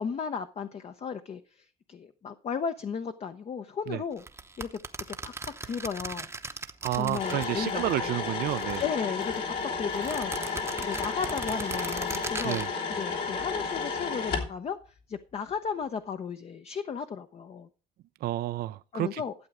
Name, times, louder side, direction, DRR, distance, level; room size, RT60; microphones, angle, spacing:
voice 1, 0.0-4.2 4.6-4.8 5.1-5.3 5.6-6.3 6.9-8.1 8.8-12.6 12.9-17.7 18.9-19.3, left 6 dB, 40° left, 0.7 m, -35 dB
sound 1, 4.2-8.0 8.3-9.4 9.9-12.7, right 3 dB, 15° right, 0.8 m, -39 dB
voice 2, 6.8-8.8 12.4-12.7 18.2-19.2, right 14 dB, 65° right, 0.5 m, -30 dB
sound 2, 7.2-14.5, left 4 dB, 70° left, 3.2 m, -32 dB
12.5 x 7.7 x 4.9 m
cardioid pair, 110°, 17 cm